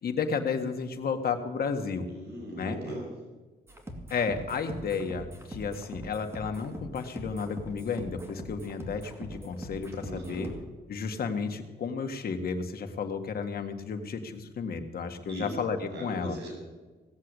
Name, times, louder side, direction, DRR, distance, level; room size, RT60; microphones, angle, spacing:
voice 1, 0.0-2.1 2.6-2.8 4.1-10.5 10.9-16.4, left 5 dB, 60° left, 5 dB, 1.7 m, -32 dB
voice 2, 2.1-3.1 10.0-10.5 15.3-15.6 15.9-16.5, right 1 dB, 75° right, 0 dB, 5.9 m, -38 dB
sound 1, 3.7-10.6, equal, 15° right, 2.4 m, -43 dB
17.5 x 7.6 x 8.2 m, 1.2 s
cardioid pair, 115°, 17 cm